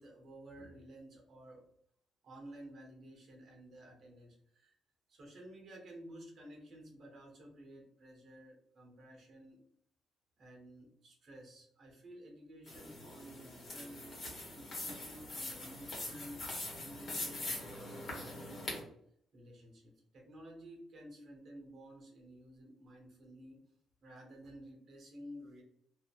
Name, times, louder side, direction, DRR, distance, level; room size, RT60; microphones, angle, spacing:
voice 1, 0.0-1.6 2.2-4.7 5.1-9.6 10.4-14.2 14.5-16.4 16.8-18.9 19.3-23.6 24.0-25.6, equal, 60° right, 0 dB, 0.9 m, -53 dB
sound 1, 12.7-18.8, left 2 dB, 45° left, 1.1 m, -43 dB
2.7 x 2.5 x 2.2 m, 0.70 s
cardioid pair, 90°, 0 cm